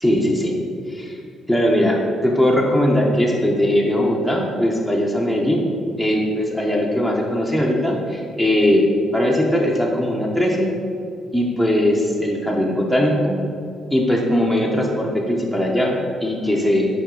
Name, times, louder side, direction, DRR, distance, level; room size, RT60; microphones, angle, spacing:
voice 1, 0.0-0.6 0.9-1.2 1.5-5.6 6.0-8.8 9.1-10.7 11.3-13.4 13.9-16.9, left 1 dB, 5° right, -2 dB, 0.7 m, -19 dB
5.3 x 4.8 x 3.7 m, 2.3 s
cardioid pair, 90°, 0 cm